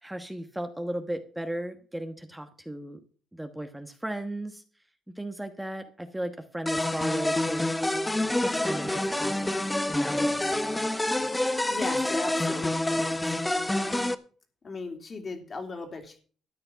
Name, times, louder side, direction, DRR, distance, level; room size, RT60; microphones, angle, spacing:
voice 1, 0.0-3.0 3.3-4.6 5.1-7.7 8.4-10.5, right 1 dB, 5° right, 7 dB, 1.2 m, -36 dB
sound 1, 6.7-14.2, left 1 dB, 10° left, 1.0 m, -27 dB
voice 2, 11.7-13.4 13.8-14.1 14.6-16.2, left 3 dB, 40° left, 6 dB, 3.0 m, -38 dB
13.0 x 8.8 x 5.7 m, 0.42 s
cardioid pair, 90°, 0 cm